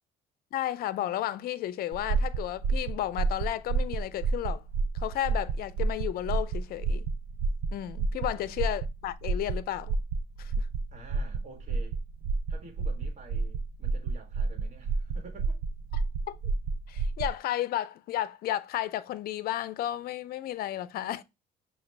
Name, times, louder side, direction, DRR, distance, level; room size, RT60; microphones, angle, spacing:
voice 1, 0.5-4.6 4.9-7.0 7.7-10.0 10.4-10.7 15.9-16.4 16.9-21.2, left 13 dB, 65° left, 0.5 m, -33 dB
sound 1, 1.9-17.4, right 4 dB, 85° right, 0.5 m, -30 dB
voice 2, 10.9-12.0 12.5-15.6, right 2 dB, 45° right, 1.4 m, -50 dB
5.8 x 2.4 x 3.2 m
cardioid pair, 110°, 17 cm